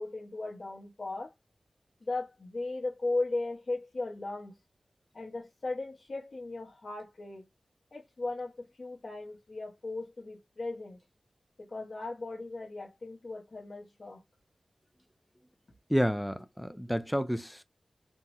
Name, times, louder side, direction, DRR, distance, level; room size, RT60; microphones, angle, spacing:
voice 1, 0.0-1.3 2.0-4.5 5.1-7.4 7.9-11.0 11.6-14.2, left 2 dB, 50° left, 0.6 m, -37 dB
voice 2, 15.9-17.6, equal, ahead, 0.3 m, -30 dB
3.5 x 2.0 x 2.7 m
wide cardioid pair, 110°, 0 cm